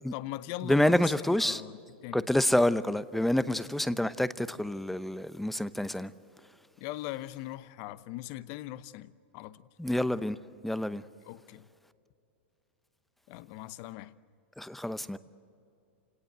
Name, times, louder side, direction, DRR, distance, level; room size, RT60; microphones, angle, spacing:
voice 1, 0.1-1.1 1.4-2.3 6.8-9.6 11.3-11.7 13.3-14.1, left 16 dB, 50° left, 0.9 m, -40 dB
voice 2, 0.6-1.6 2.1-6.1 9.8-10.4 10.6-11.0 14.6-15.2, left 1 dB, 5° left, 0.7 m, -27 dB
28.5 x 17.5 x 8.1 m
hypercardioid pair, 115°, 6 cm